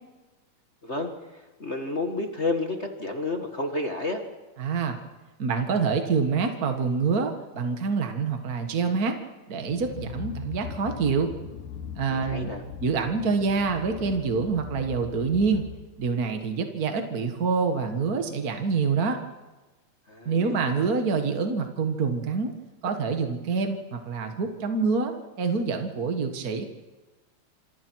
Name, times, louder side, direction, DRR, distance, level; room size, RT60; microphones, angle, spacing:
voice 1, 0.8-4.2 12.1-12.6 20.1-20.9, left 2 dB, 35° left, 3 dB, 1.1 m, -31 dB
voice 2, 4.6-5.0 5.4-9.2 9.5-11.3 11.9-12.5 12.8-15.6 16.0-19.2 20.2-22.5 22.8-26.6, right 5 dB, 50° right, 5 dB, 1.1 m, -26 dB
sound 1, 9.6-16.2, left 7 dB, 75° left, 2.6 m, -39 dB
27.5 x 27.0 x 4.7 m, 1.2 s
omnidirectional pair, 4.0 m